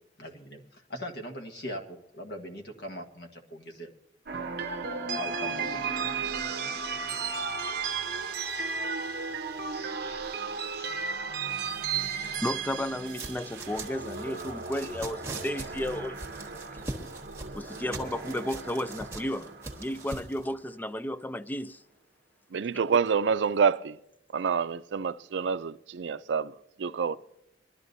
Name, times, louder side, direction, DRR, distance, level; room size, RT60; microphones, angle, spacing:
voice 1, 0.2-3.9 5.1-6.0, equal, 65° left, 1.5 m, -40 dB
sound 1, 4.3-20.5, right 5 dB, 60° right, 0.9 m, -35 dB
voice 2, 12.3-16.2 17.6-19.5 19.8-21.7, left 1 dB, 10° left, 0.3 m, -33 dB
sound 2, 13.0-20.4, right 3 dB, 15° right, 1.5 m, -42 dB
voice 3, 22.5-24.0 24.3-27.2, right 6 dB, 90° right, 0.4 m, -27 dB
22.0 x 12.5 x 2.7 m
head